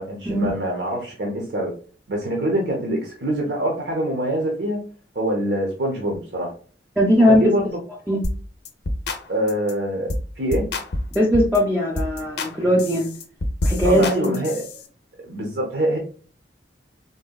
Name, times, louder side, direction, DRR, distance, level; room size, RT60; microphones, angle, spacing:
voice 1, 0.0-1.7 2.1-4.8 5.1-6.5 7.3-7.7 9.3-10.1 10.4-10.7 13.8-14.6 15.3-16.0, right 1 dB, 65° right, -1 dB, 0.7 m, -24 dB
voice 2, 7.0-7.5 8.1-8.2 11.1-13.1 13.6-14.4, equal, 10° right, -3 dB, 0.5 m, -19 dB
sound 1, 8.2-8.4 8.6-9.2 9.5-9.7 10.1-10.3 10.5-11.6 12.0-12.5 12.8-14.8, left 1 dB, 60° left, 0.5 m, -27 dB
3.9 x 2.2 x 2.2 m, 0.41 s
head